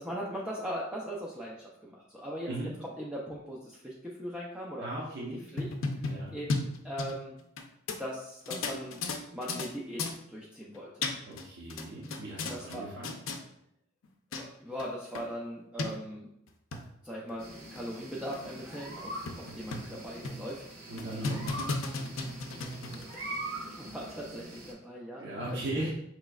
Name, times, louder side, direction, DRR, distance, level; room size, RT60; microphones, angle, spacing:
voice 1, 0.0-2.5 2.8-4.9 5.5-5.7 6.0-7.4 8.0-9.0 9.3-11.1 12.4-12.9 14.3-16.3 17.0-20.6 21.1-21.4 22.6-22.7 22.9-25.2 25.7-25.9, equal, 5° right, -5 dB, 0.4 m, -40 dB
voice 2, 4.8-5.4 6.0-6.3 11.3-13.2 20.9-21.9 25.1-25.9, right 1 dB, 60° right, -6 dB, 0.9 m, -38 dB
sound 1, 5.4-7.6 7.9-8.0 8.5-9.7 10.0-10.2 10.7-11.4 11.7-12.8 13.0-13.4 14.0-14.1 14.3-14.4 14.8-14.9 15.1-15.2 15.8-15.9 16.5-16.8 17.3-17.4 17.8-17.9 18.3-18.4 18.7-18.8 19.3-19.9 20.2-20.5 21.0-23.1, left 3 dB, 75° left, 0.5 m, -34 dB
sound 2, 17.4-24.7, right 1 dB, 80° right, 1.4 m, -43 dB
5.0 x 3.0 x 2.3 m, 0.78 s
head